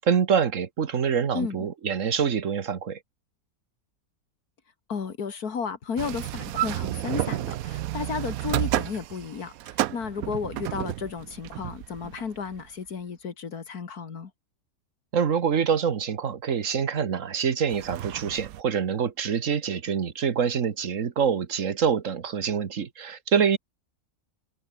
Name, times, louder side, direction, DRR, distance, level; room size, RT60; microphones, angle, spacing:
voice 1, 0.0-3.0 15.1-23.6, right 7 dB, 60° right, 1.6 m, -25 dB
voice 2, 1.3-1.7 4.9-14.3, left 6 dB, 80° left, 2.4 m, -33 dB
sound 1, 6.0-12.7 17.7-18.6, right 14 dB, 75° right, 1.0 m, -31 dB
omnidirectional pair, 1.6 m